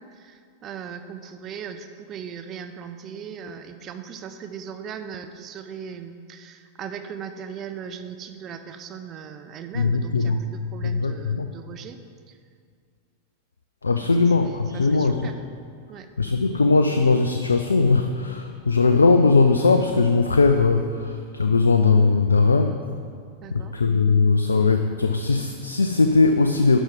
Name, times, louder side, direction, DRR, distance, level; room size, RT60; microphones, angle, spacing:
voice 1, 0.0-12.0 12.3-12.4 14.0-14.1 14.7-15.4 15.9-16.1 23.4-23.8, right 7 dB, 30° right, 8 dB, 0.5 m, -38 dB
voice 2, 9.7-10.4 10.8-11.5 13.8-15.3 16.2-22.8 23.5-26.8, left 4 dB, 75° left, 6 dB, 0.4 m, -19 dB
11.5 x 6.1 x 3.8 m, 2.2 s
figure-of-eight pair, 90°, 0 cm